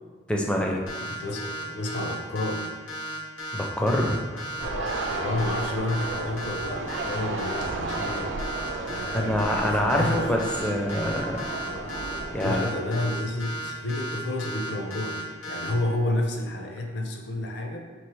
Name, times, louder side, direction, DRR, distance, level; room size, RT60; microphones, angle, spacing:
voice 1, 0.3-0.8 3.5-4.4 9.1-11.4 12.3-12.6, left 1 dB, 5° left, 0 dB, 0.4 m, -25 dB
sound 1, 0.9-15.7, right 1 dB, 90° left, 0.8 m, -35 dB
voice 2, 1.0-2.7 4.3-9.3 9.6-10.3 11.6-12.0 12.3-17.8, left 1 dB, 60° left, 2 dB, 0.6 m, -31 dB
sound 2, 4.6-12.6, right 3 dB, 65° right, 0.3 m, -34 dB
sound 3, 6.6-13.5, right 1 dB, 90° right, 0.7 m, -42 dB
3.2 x 3.1 x 4.6 m, 1.4 s
head